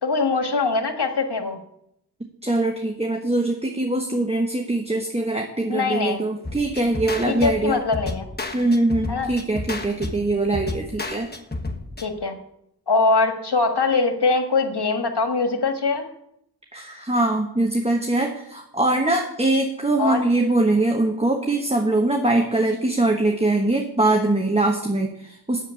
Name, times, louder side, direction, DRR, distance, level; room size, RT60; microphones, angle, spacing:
voice 1, 0.0-1.6 5.7-6.2 7.3-8.3 9.1-9.3 12.0-12.4 12.9-16.1 20.0-20.2, left 3 dB, 65° left, 6 dB, 1.5 m, -22 dB
voice 2, 2.4-7.8 8.5-11.3 16.7-25.6, right 2 dB, 15° right, 3 dB, 1.2 m, -22 dB
sound 1, 6.4-12.1, left 2 dB, 25° left, 1.2 m, -32 dB
8.2 x 7.4 x 8.2 m, 0.76 s
wide cardioid pair, 60°, 43 cm